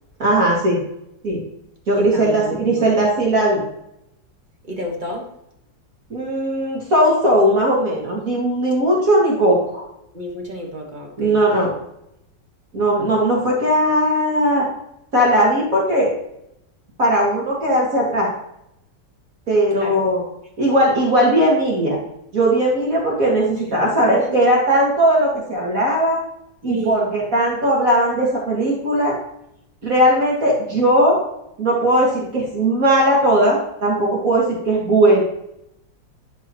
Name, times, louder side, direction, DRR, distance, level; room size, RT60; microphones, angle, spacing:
voice 1, 0.2-0.8 1.2-1.4 1.9-3.6 6.1-9.8 11.2-11.7 12.7-14.7 15.1-16.1 17.0-18.3 19.5-20.2 20.6-22.0 22.3-26.2 26.6-29.2 29.8-31.2 31.6-35.2, right 1 dB, 50° right, -4 dB, 2.5 m, -18 dB
voice 2, 2.0-3.0 4.7-5.3 10.1-11.4 19.7-20.0 24.2-24.3 26.7-27.0, equal, 25° right, 0 dB, 1.5 m, -30 dB
12.5 x 4.7 x 3.0 m, 0.79 s
omnidirectional pair, 2.0 m